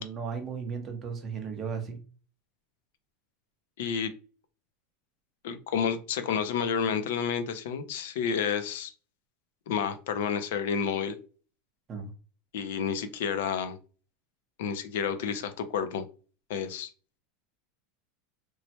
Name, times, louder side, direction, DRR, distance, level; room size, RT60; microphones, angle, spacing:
voice 1, 0.0-2.0 11.9-12.1, right 6 dB, 20° right, 4 dB, 0.6 m, -35 dB
voice 2, 3.8-4.1 5.4-8.9 9.7-11.2 12.5-13.8 14.6-16.0 16.5-16.9, left 7 dB, 70° left, 10 dB, 0.5 m, -30 dB
3.0 x 2.1 x 2.8 m, 0.37 s
supercardioid pair, 180°, 0 cm